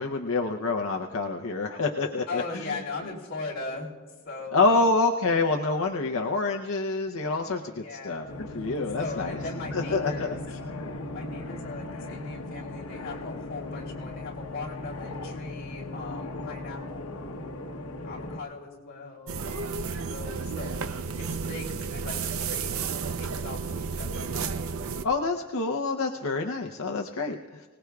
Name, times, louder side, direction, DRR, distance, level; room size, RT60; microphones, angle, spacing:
voice 1, 0.0-2.4 4.5-8.3 8.5-9.4 9.7-10.3 25.0-27.6, left 3 dB, 70° left, 3 dB, 0.7 m, -27 dB
voice 2, 2.3-3.9 4.2-4.8 7.7-8.4 9.0-10.4 11.1-17.5 18.0-22.8 23.2-24.4, left 3 dB, 45° left, -4 dB, 3.2 m, -39 dB
sound 1, 8.3-18.4, left 2 dB, 90° left, 1.0 m, -37 dB
sound 2, 19.3-25.0, right 5 dB, 75° right, 0.6 m, -32 dB
25.0 x 18.5 x 2.3 m, 1.5 s
head